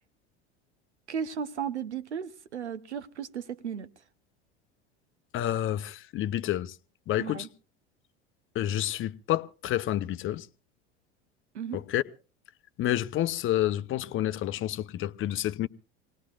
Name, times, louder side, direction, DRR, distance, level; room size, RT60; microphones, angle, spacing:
voice 1, 1.1-3.9 7.2-7.5 11.5-11.8, right 7 dB, 90° right, 0.9 m, -35 dB
voice 2, 5.3-6.7 7.1-7.5 8.5-10.5 11.7-12.0 12.8-15.7, left 13 dB, 40° left, 0.7 m, -29 dB
26.0 x 19.0 x 2.4 m
hypercardioid pair, 80°, 33 cm